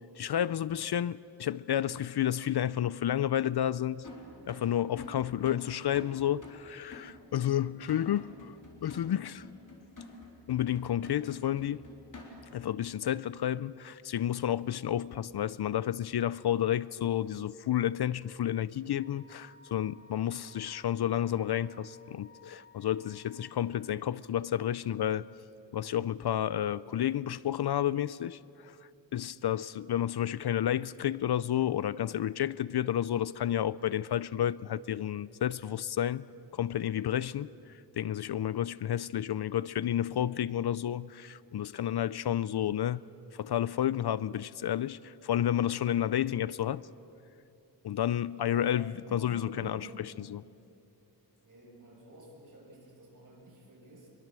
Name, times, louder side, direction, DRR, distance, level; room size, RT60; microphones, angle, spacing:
voice 1, 0.2-4.1 4.4-9.4 10.5-11.8 12.5-25.3 25.7-28.8 29.1-36.3 36.5-43.0 43.3-46.9 47.8-49.8 50.3-50.4, left 11 dB, 65° left, 0.5 m, -31 dB
sound 1, 4.0-12.6, left 2 dB, 45° left, 4.2 m, -49 dB
Wind instrument woodwind instrument, 18.9-23.7, left 2 dB, 25° left, 5.0 m, -59 dB
voice 2, 48.4-50.0 51.4-54.1, right 2 dB, 45° right, 7.0 m, -50 dB
25.0 x 22.0 x 7.5 m
wide cardioid pair, 130°, 43 cm